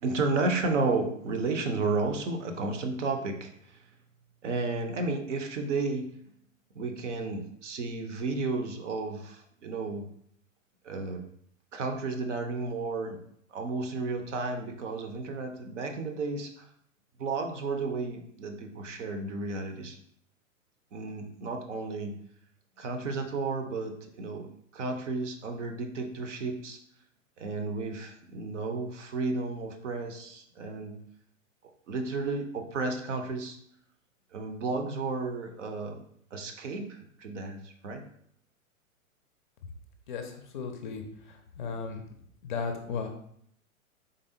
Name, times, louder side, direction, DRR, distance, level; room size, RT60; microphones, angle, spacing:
voice 1, 0.0-3.8 4.4-6.1 6.7-10.1 10.8-11.2 11.7-13.2 13.5-16.6 17.2-20.0 20.9-22.2 22.8-24.5 24.7-26.8 27.4-30.9 31.9-33.6 34.3-36.0 36.3-38.0, right 3 dB, 60° right, 5 dB, 0.7 m, -32 dB
voice 2, 40.1-42.0 42.4-43.1, left 5 dB, 35° left, 4 dB, 0.5 m, -36 dB
3.9 x 3.4 x 2.6 m, 0.68 s
figure-of-eight pair, 105°, 42 cm